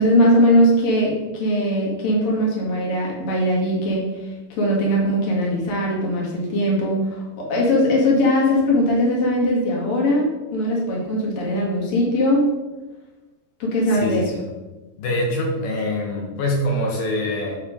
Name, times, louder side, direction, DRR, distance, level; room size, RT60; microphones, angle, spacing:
voice 1, 0.0-4.3 4.6-12.5 13.6-14.2, equal, 55° left, -3 dB, 3.0 m, -20 dB
voice 2, 14.0-14.4 15.0-17.6, left 1 dB, 90° left, -2 dB, 3.0 m, -24 dB
9.5 x 3.7 x 5.0 m, 1.1 s
omnidirectional pair, 3.9 m